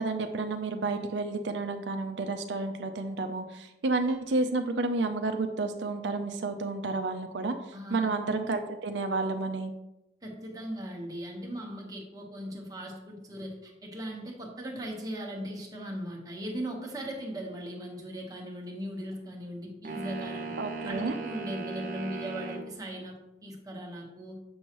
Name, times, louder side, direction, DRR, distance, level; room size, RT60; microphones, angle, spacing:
voice 1, 0.0-7.5 7.9-9.7 20.6-21.2, right 3 dB, 85° right, 7 dB, 0.5 m, -30 dB
voice 2, 7.7-8.1 10.2-20.5 20.8-23.2 23.4-24.4, equal, 20° right, -1 dB, 1.2 m, -38 dB
sound 1, 19.8-22.7, right 3 dB, 50° right, 0.8 m, -37 dB
7.0 x 5.4 x 3.0 m, 0.91 s
head